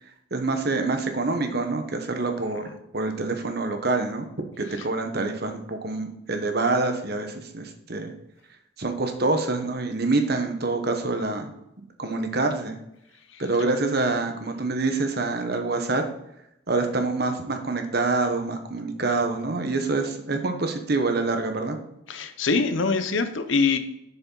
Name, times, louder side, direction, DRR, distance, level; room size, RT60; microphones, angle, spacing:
voice 1, 0.3-4.3 4.6-8.1 8.8-11.5 12.0-12.8 13.4-16.0 16.7-21.8, right 3 dB, 50° right, 5 dB, 1.1 m, -26 dB
voice 2, 22.1-23.8, left 4 dB, 65° left, 9 dB, 0.8 m, -24 dB
6.9 x 6.9 x 4.0 m, 0.82 s
head